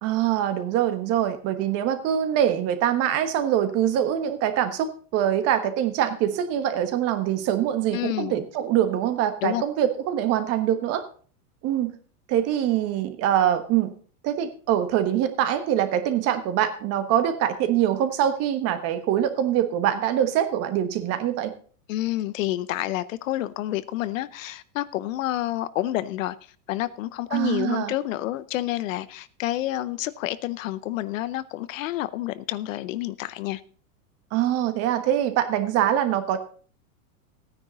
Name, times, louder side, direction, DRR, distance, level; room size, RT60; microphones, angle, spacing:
voice 1, 0.0-11.0 11.6-11.9 12.3-13.9 14.2-21.5 27.3-27.9 34.3-36.4, right 10 dB, 30° right, 1.3 m, -24 dB
voice 2, 7.9-8.4 9.4-9.6 21.9-26.4 26.7-33.6, left 15 dB, 60° left, 0.7 m, -29 dB
15.0 x 9.8 x 4.0 m
supercardioid pair, 150°, 46 cm